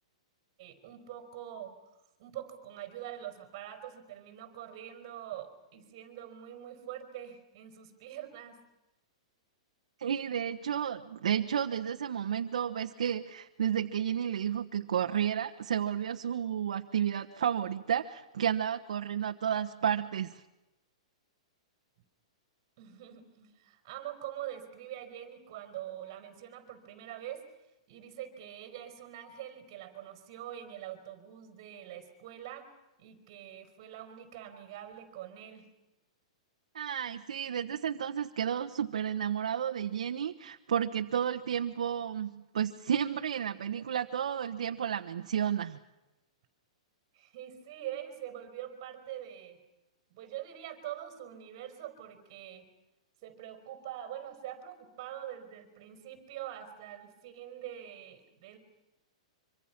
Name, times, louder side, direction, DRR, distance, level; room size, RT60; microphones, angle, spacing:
voice 1, 0.6-1.8 2.2-8.6 22.8-27.4 27.9-32.7 33.0-35.7 47.1-49.6 50.1-52.6 53.2-58.6, right 11 dB, 35° right, 7 dB, 4.6 m, -44 dB
voice 2, 10.0-20.4 36.7-45.8, right 9 dB, 80° right, 3 dB, 1.3 m, -32 dB
25.5 x 25.0 x 6.1 m, 0.98 s
hypercardioid pair, 170°, 4 cm